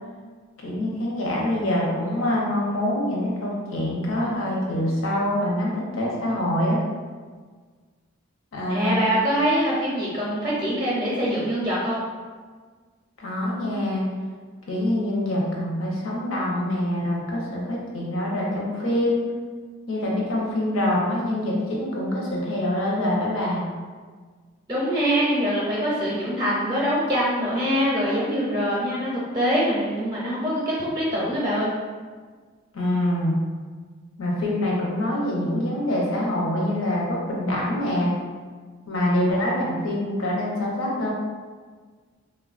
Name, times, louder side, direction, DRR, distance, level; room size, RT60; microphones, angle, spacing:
voice 1, 0.6-6.8 8.5-9.0 13.2-14.0 14.7-19.3 19.9-23.6 32.7-33.4 34.2-38.1 38.9-41.1, left 1 dB, 90° left, -4 dB, 0.6 m, -25 dB
voice 2, 8.7-12.0 24.7-31.7, equal, 20° right, -6 dB, 0.5 m, -24 dB
3.2 x 2.2 x 2.4 m, 1.5 s
head